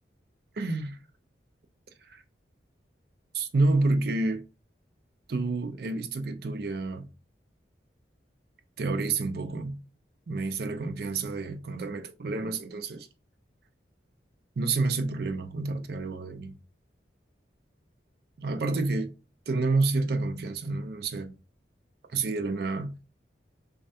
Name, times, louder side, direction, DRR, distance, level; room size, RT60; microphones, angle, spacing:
voice 1, 0.6-1.0 2.0-2.2 3.3-4.5 5.3-7.1 8.8-9.8 10.3-13.1 14.6-16.6 18.4-19.1 19.5-21.3 22.1-23.0, right 3 dB, 60° right, 0.4 m, -29 dB
3.1 x 2.4 x 2.7 m
head